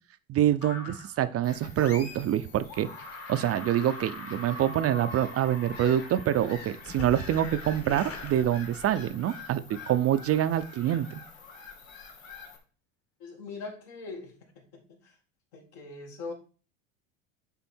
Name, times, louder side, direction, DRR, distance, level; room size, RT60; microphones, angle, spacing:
voice 1, 0.3-2.9 3.3-11.2, right 11 dB, 35° right, 11 dB, 0.5 m, -26 dB
sound 1, 0.6-1.2 1.8-2.4 2.7-9.1, left 2 dB, 35° left, 1.5 m, -42 dB
Bird vocalization bird call bird song / Gull seagull, 1.4-12.6, left 4 dB, 85° left, 1.7 m, -47 dB
voice 2, 13.2-15.1 15.5-16.3, left 3 dB, 65° left, 1 dB, 2.4 m, -42 dB
9.1 x 3.8 x 4.4 m, 0.37 s
hypercardioid pair, 85°, 39 cm